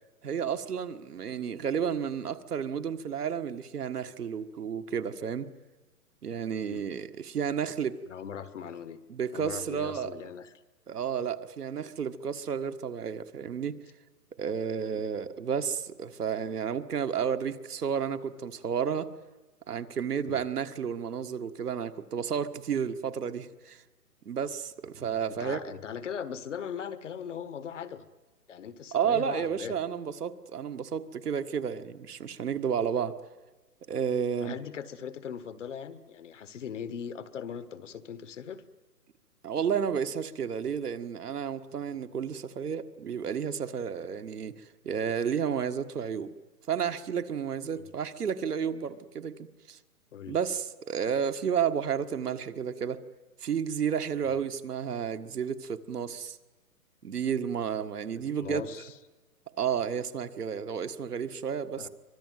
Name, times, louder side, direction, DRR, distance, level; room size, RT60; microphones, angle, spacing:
voice 1, 0.2-5.5 6.2-8.0 9.1-10.1 10.9-13.8 14.4-19.1 19.7-23.8 24.3-25.6 28.9-33.2 33.9-34.6 39.4-46.3 46.7-49.8 50.3-53.0 53.4-56.4 57.0-58.6 59.6-61.9, right 7 dB, 75° right, 8 dB, 1.7 m, -31 dB
voice 2, 8.1-9.0 9.3-10.5 14.9-15.0 20.2-20.4 25.4-28.1 28.5-29.8 34.4-38.6 47.7-47.9 50.1-50.3 58.4-58.9 61.8-61.9, left 7 dB, 50° left, 13 dB, 1.5 m, -39 dB
24.5 x 20.5 x 9.3 m, 1.2 s
hypercardioid pair, 165°, 47 cm